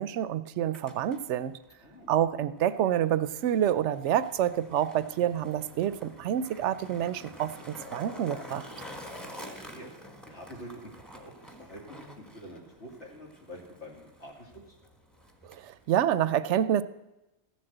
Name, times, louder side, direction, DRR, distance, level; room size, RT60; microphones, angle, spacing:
voice 1, 0.0-1.6 2.1-8.7 15.4-16.8, right 10 dB, 75° right, 15 dB, 0.9 m, -28 dB
Skateboard, 0.5-16.3, equal, ahead, 1.3 m, -48 dB
voice 2, 1.8-2.1 9.2-9.9 10.2-14.8, equal, 70° left, 0 dB, 2.7 m, -47 dB
14.5 x 7.6 x 7.9 m, 0.98 s
omnidirectional pair, 1.2 m